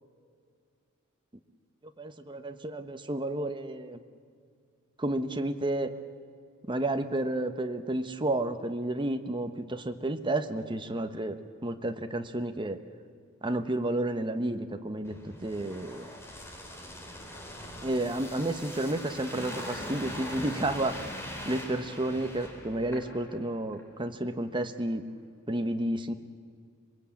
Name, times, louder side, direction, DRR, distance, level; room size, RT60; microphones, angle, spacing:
voice 1, 2.0-4.0 5.0-5.9 6.7-12.8 13.4-16.1 17.8-21.1 21.4-25.1 25.5-26.1, right 1 dB, 25° right, 7 dB, 1.1 m, -31 dB
sound 1, 15.0-23.4 23.7-23.9, left 1 dB, 10° left, 3.9 m, -41 dB
26.0 x 21.5 x 8.6 m, 2.2 s
head